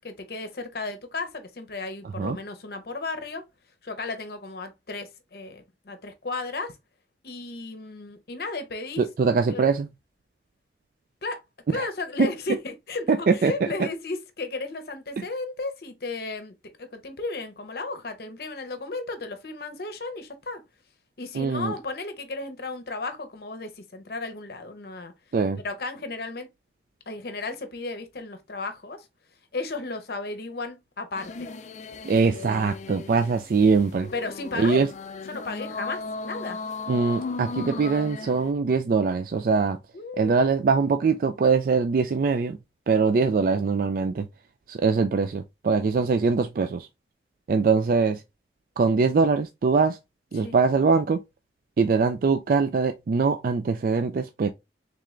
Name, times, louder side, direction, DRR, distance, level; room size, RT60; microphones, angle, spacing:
voice 1, 0.0-3.4 3.8-6.7 7.2-9.0 9.5-9.7 11.2-11.4 11.7-20.6 21.2-25.1 25.6-26.5 27.1-29.0 29.5-31.5 34.1-34.9 35.3-36.6 39.9-40.5 50.4-50.6, left 3 dB, 60° left, 0.7 m, -34 dB
voice 2, 9.0-9.9 11.7-11.9 12.2-12.3 13.1-13.9 15.2-15.3 21.3-21.7 25.3-25.6 32.0-34.1 34.5-34.9 36.9-39.8 40.2-42.6 42.9-44.3 44.7-46.9 47.5-48.2 48.8-50.0 50.3-51.2 51.8-54.5, right 4 dB, 50° right, 0.3 m, -22 dB
sound 1, 31.1-38.5, left 4 dB, 40° left, 0.4 m, -36 dB
3.7 x 3.3 x 3.1 m
head